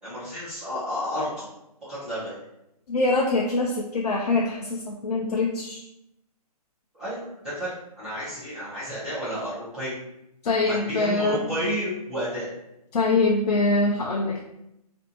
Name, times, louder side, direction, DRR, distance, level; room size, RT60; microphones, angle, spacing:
voice 1, 0.0-1.5 1.8-2.4 6.9-9.9 10.6-12.5, equal, 5° right, -16 dB, 0.5 m, -31 dB
voice 2, 2.9-5.8 10.4-11.4 12.9-14.4, left 2 dB, 80° left, 0 dB, 0.4 m, -24 dB
2.5 x 2.3 x 2.6 m, 0.85 s
hypercardioid pair, 165°, 20 cm